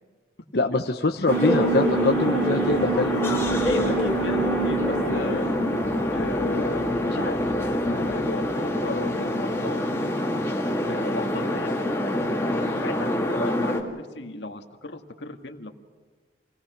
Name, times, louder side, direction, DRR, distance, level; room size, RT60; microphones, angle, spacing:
voice 1, 0.5-3.5, left 3 dB, 65° left, 2 dB, 1.0 m, -24 dB
sound 1, 1.3-13.8, left 1 dB, 15° left, 2.4 m, -26 dB
Alarm, 1.3-8.4, right 4 dB, 85° right, 3.5 m, -30 dB
sound 2, 1.9-6.5, right 2 dB, 10° right, 2.2 m, -42 dB
voice 2, 3.5-5.5 6.0-10.3 10.9-15.7, left 2 dB, 85° left, 5 dB, 1.8 m, -36 dB
28.5 x 19.0 x 6.1 m, 1.4 s
head